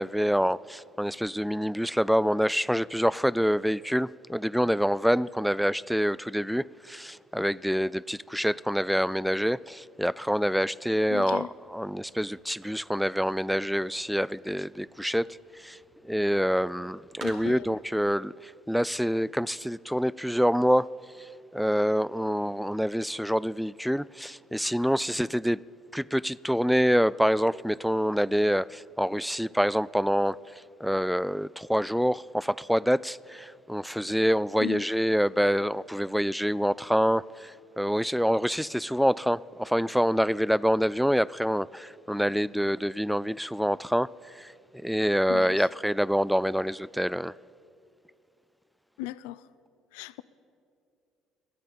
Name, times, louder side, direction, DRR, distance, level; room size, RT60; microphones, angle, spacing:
voice 1, 0.0-15.8 16.0-20.9 21.2-25.6 25.9-30.4 30.8-44.5 44.8-47.3, equal, ahead, 0.3 m, -26 dB
sound 1, 11.0-17.9, right 3 dB, 55° right, 2.0 m, -54 dB
voice 2, 11.1-11.5 17.2-17.8 34.6-34.8 45.3-45.7 49.0-49.4 49.9-50.2, left 18 dB, 80° left, 0.3 m, -37 dB
13.5 x 10.0 x 8.7 m
hypercardioid pair, 60°, 0 cm